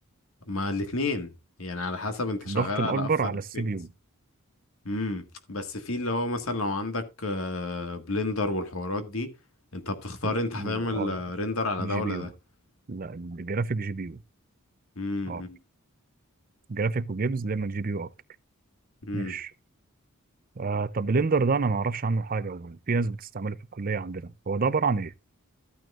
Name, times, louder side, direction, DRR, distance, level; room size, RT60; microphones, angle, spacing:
voice 1, 0.5-1.3 1.6-3.1 3.5-3.6 4.9-9.3 9.7-12.3 15.0-15.6 19.0-19.4, left 2 dB, 65° left, 1.8 m, -30 dB
voice 2, 2.5-3.9 10.2-11.2 11.8-12.3 12.9-14.2 15.3-15.4 16.7-18.1 19.1-19.5 20.6-25.1, right 4 dB, 40° right, 0.5 m, -28 dB
14.0 x 9.1 x 2.5 m
head